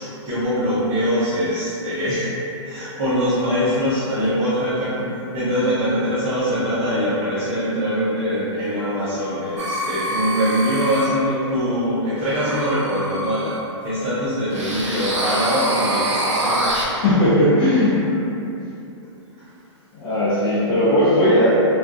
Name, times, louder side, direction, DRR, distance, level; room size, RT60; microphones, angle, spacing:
voice 1, 0.0-2.3 2.6-5.0 5.3-13.6 13.8-16.6 19.4-19.5, equal, 20° right, -13 dB, 0.5 m, -23 dB
sound 1, 9.6-11.1 12.2-13.6 14.5-16.8, right 1 dB, 80° right, 0.6 m, -25 dB
voice 2, 16.9-18.0 19.9-21.5, left 1 dB, 45° left, -13 dB, 0.7 m, -17 dB
2.5 x 2.2 x 2.3 m, 2.8 s
hypercardioid pair, 160°, 15 cm